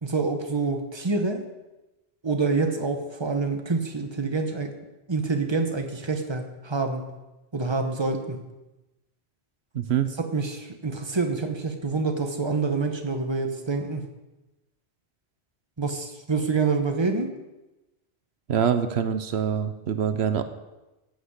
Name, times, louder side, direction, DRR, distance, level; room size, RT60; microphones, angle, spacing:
voice 1, 0.0-1.4 2.2-4.7 5.1-7.1 7.5-8.4 10.2-14.0 15.8-17.3, right 4 dB, 25° right, 5 dB, 1.2 m, -27 dB
voice 2, 9.7-10.1 18.5-20.4, right 8 dB, 80° right, 10 dB, 1.0 m, -24 dB
13.0 x 6.5 x 8.1 m, 1.0 s
omnidirectional pair, 1.1 m